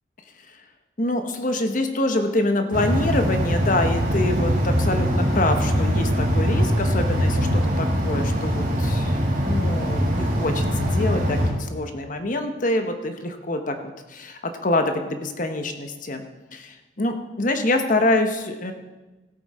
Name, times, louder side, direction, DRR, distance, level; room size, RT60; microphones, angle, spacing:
voice 1, 1.0-9.2 9.4-13.8 14.1-16.2 16.5-18.7, left 2 dB, 45° left, 6 dB, 1.0 m, -25 dB
sound 1, 2.7-11.5, equal, 50° right, 2.3 m, -22 dB
15.5 x 8.5 x 4.3 m, 1.1 s
head